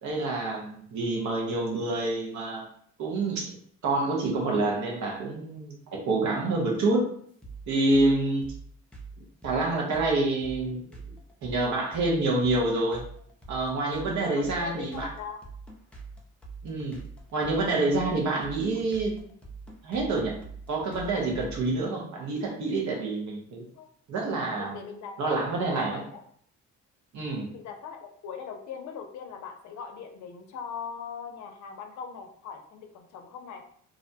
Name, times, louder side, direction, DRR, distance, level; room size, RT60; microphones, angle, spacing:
voice 1, 0.0-2.6 3.0-3.5 3.8-7.1 7.7-8.5 9.4-10.9 11.4-13.0 13.5-15.1 16.6-17.0 17.3-19.2 19.8-20.4 20.7-23.6 24.1-24.8 25.2-26.0 27.1-27.5, right 2 dB, 70° right, 0 dB, 0.8 m, -27 dB
sound 1, 7.4-21.7, right 4 dB, 5° left, 0.6 m, -43 dB
voice 2, 14.4-15.5 23.7-23.9 24.6-26.2 27.5-33.6, left 6 dB, 70° left, 5 dB, 0.5 m, -40 dB
2.5 x 2.1 x 2.6 m, 0.62 s
cardioid pair, 90°, 30 cm